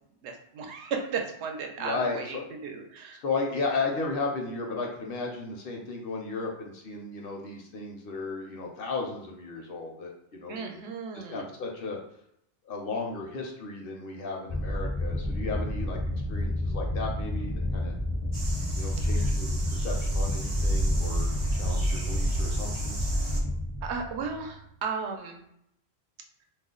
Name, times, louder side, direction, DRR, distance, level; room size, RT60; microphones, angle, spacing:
voice 1, 0.2-3.2 10.5-11.5 19.2-19.3 23.8-25.4, right 5 dB, 80° right, 3 dB, 0.8 m, -35 dB
voice 2, 1.8-2.5 3.2-10.6 11.1-12.0 12.6-16.0 16.3-17.9 18.8-21.3 21.6-23.0, left 3 dB, 65° left, 0 dB, 0.7 m, -34 dB
sound 1, 14.5-24.6, left 1 dB, 25° left, 0.4 m, -31 dB
sound 2, 18.3-23.4, right 1 dB, 40° right, 0.3 m, -29 dB
2.4 x 2.0 x 3.6 m, 0.76 s
omnidirectional pair, 1.1 m